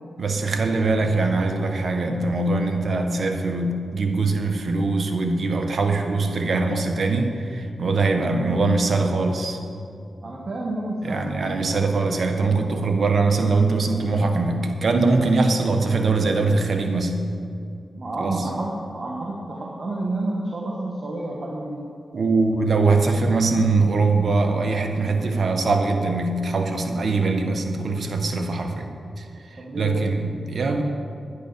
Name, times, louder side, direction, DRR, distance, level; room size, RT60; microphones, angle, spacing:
voice 1, 0.2-9.6 11.0-17.2 18.2-18.3 22.1-28.9 29.7-30.8, right 3 dB, 65° right, 5 dB, 1.4 m, -22 dB
voice 2, 10.2-11.3 11.7-11.8 17.9-21.8 29.6-30.1, right 2 dB, 50° right, -1 dB, 1.7 m, -29 dB
10.5 x 10.0 x 6.9 m, 2.4 s
cardioid pair, 55°, 0 cm